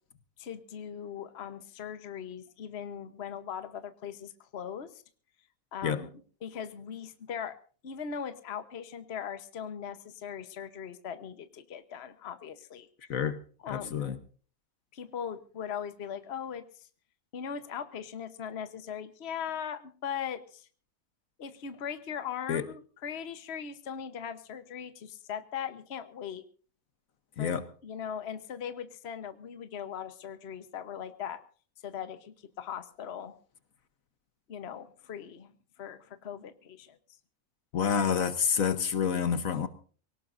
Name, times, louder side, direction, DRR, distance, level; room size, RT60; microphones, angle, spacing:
voice 1, 0.4-5.0 5.7-6.1 6.4-7.6 7.8-12.9 13.6-14.1 14.9-16.9 17.3-20.7 21.4-26.4 27.4-31.4 31.8-33.3 34.5-35.5 35.8-37.0, left 8 dB, 45° left, 1.2 m, -39 dB
voice 2, 13.7-14.2 22.5-22.6 27.4-27.7 37.7-39.7, left 7 dB, 65° left, 1.4 m, -28 dB
24.0 x 18.0 x 2.6 m
omnidirectional pair, 1.6 m